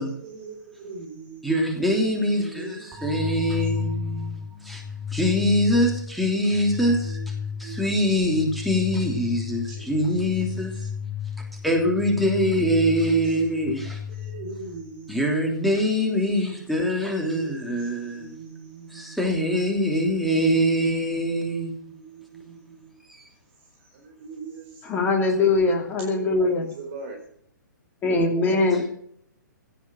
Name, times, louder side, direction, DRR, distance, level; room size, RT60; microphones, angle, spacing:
voice 1, 0.0-1.5 2.2-3.8 6.7-7.3 7.6-7.8 9.7-10.7 13.2-13.8 14.1-15.3 16.1-19.2 21.8-23.0 23.8-24.9 26.5-27.2, right 3 dB, 40° right, 4.4 m, -42 dB
voice 2, 1.4-4.8 5.1-7.3 7.6-10.9 11.6-14.0 15.1-18.4 18.9-21.9 23.1-23.2, equal, ahead, 3.1 m, -24 dB
sound 1, 2.9-14.9, left 7 dB, 15° right, 2.7 m, -33 dB
voice 3, 24.8-26.7 28.0-28.9, left 3 dB, 15° left, 2.8 m, -22 dB
17.0 x 8.0 x 7.7 m
figure-of-eight pair, 130°, 10 cm